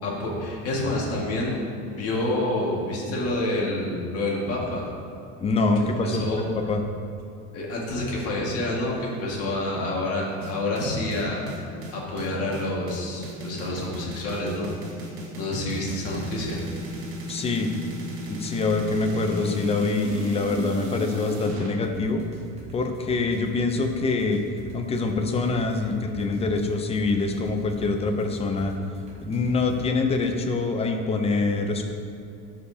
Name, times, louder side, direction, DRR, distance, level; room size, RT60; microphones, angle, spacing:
voice 1, 0.0-1.6 1.9-4.9 6.0-6.4 7.5-14.7 15.4-16.6, left 1 dB, 45° left, -4 dB, 1.8 m, -28 dB
voice 2, 5.4-6.2 6.6-6.8 17.3-17.7 18.2-22.2 22.7-24.4 24.7-28.7 29.2-31.8, left 3 dB, 20° left, 5 dB, 0.5 m, -25 dB
sound 1, 10.4-21.7, right 1 dB, 60° right, 1.6 m, -35 dB
sound 2, 21.8-29.8, left 1 dB, 20° right, 1.3 m, -44 dB
13.0 x 5.0 x 2.8 m, 2.4 s
cardioid pair, 145°, 34 cm